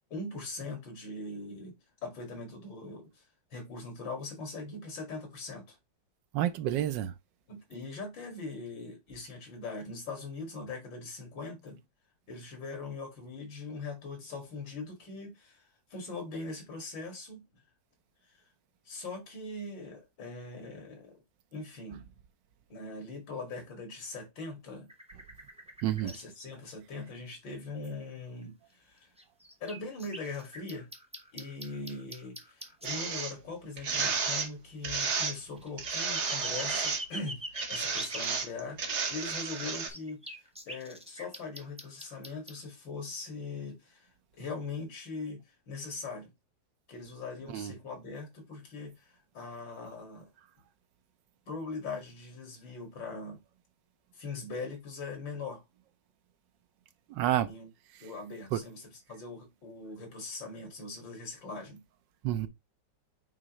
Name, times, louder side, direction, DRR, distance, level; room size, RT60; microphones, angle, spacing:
voice 1, 0.1-1.7 2.0-3.2 3.5-5.8 7.5-11.8 12.3-15.6 15.9-17.4 18.9-21.2 21.5-22.1 22.7-24.9 26.0-29.1 29.6-30.9 31.3-37.4 37.7-38.8 39.1-40.4 40.7-44.1 44.4-46.3 46.9-50.3 51.5-53.4 54.1-55.6 57.5-57.7 58.0-61.8 62.4-62.5, left 3 dB, 90° left, 2.9 m, -41 dB
voice 2, 6.3-7.1 25.8-26.1 47.5-47.7 57.1-57.5 58.5-58.6 62.2-62.5, right 12 dB, 80° right, 1.3 m, -29 dB
sound 1, 24.9-26.2 28.4-28.5 29.2-32.9 35.4-38.3 39.2-42.6, equal, 5° right, 0.7 m, -43 dB
sound 2, 32.8-33.3 33.8-34.5 34.8-35.3 35.8-37.0 37.5-39.9, right 5 dB, 45° right, 1.2 m, -32 dB
8.7 x 3.6 x 3.1 m
omnidirectional pair, 2.0 m